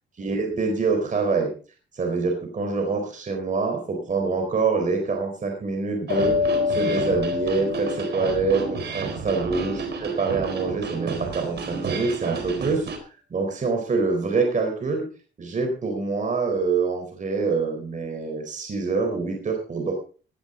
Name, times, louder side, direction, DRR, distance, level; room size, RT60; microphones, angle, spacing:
voice 1, 0.2-1.5 1.9-8.6 8.9-12.9 13.3-15.0 15.4-19.9, right 4 dB, 40° right, 3 dB, 4.2 m, -25 dB
sound 1, 6.1-9.1, left 5 dB, 70° left, 5.1 m, -27 dB
sound 2, 6.1-13.0, right 5 dB, 60° right, 4.3 m, -31 dB
18.5 x 11.0 x 3.9 m, 0.38 s
cardioid pair, 90°, 20 cm